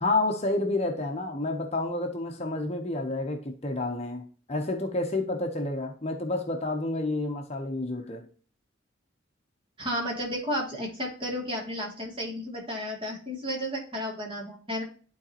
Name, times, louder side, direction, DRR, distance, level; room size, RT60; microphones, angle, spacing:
voice 1, 0.0-8.3, left 2 dB, 35° left, 0.8 m, -29 dB
voice 2, 9.8-14.8, equal, 25° right, 2.4 m, -32 dB
11.5 x 4.0 x 2.9 m
head